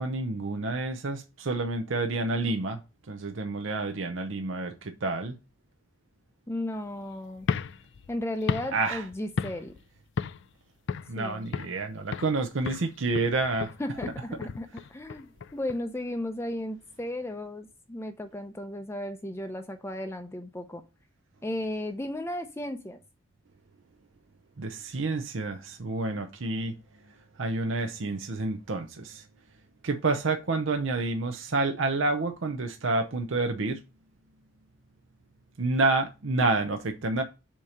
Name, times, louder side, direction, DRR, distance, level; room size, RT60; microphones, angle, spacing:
voice 1, 0.0-2.8 3.1-5.3 8.7-9.0 11.1-13.7 24.6-26.7 27.4-29.2 29.8-33.8 35.6-37.2, right 3 dB, 65° right, 0.7 m, -29 dB
voice 2, 6.5-7.5 8.1-9.7 11.2-11.5 13.8-20.8 21.4-23.0, left 1 dB, 10° left, 0.5 m, -35 dB
sound 1, 7.4-9.8 10.2-10.5 10.9-11.8 12.1-12.4 12.7-15.8, left 5 dB, 60° left, 0.4 m, -34 dB
7.3 x 2.9 x 4.8 m
head